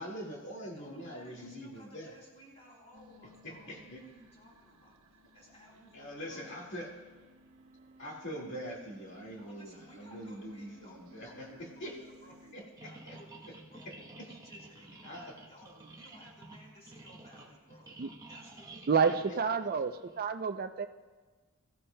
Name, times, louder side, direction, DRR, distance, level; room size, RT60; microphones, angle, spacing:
voice 1, 0.0-2.1 3.4-4.0 5.9-6.9 8.0-12.0 12.5-13.2 13.9-14.0 15.0-15.3 19.3-19.4, equal, 55° left, -2 dB, 2.0 m, -43 dB
voice 2, 0.6-6.6 9.3-17.9 18.3-19.3, right 1 dB, 30° left, -2 dB, 4.3 m, -57 dB
sound 1, 2.9-12.5, equal, 70° right, 1.3 m, -59 dB
sound 2, 12.8-20.2, right 2 dB, 15° right, 0.9 m, -51 dB
voice 3, 18.9-20.9, right 5 dB, 45° right, 9 dB, 0.4 m, -29 dB
22.5 x 14.5 x 2.2 m, 1.3 s
head